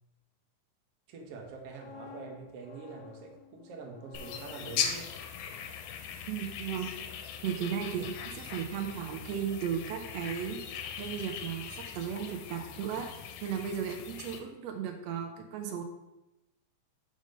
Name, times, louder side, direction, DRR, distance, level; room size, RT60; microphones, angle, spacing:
voice 1, 1.1-5.1, right 4 dB, 65° right, 3 dB, 1.6 m, -45 dB
sound 1, 1.4-7.4 7.6-7.9, left 6 dB, 55° left, 1.4 m, -53 dB
sound 2, 4.1-14.4, left 8 dB, 85° left, 2.3 m, -40 dB
voice 2, 6.3-7.0 7.4-10.6 11.0-15.8, right 8 dB, 90° right, 4 dB, 1.5 m, -35 dB
5.5 x 5.2 x 5.1 m, 0.95 s
omnidirectional pair, 3.7 m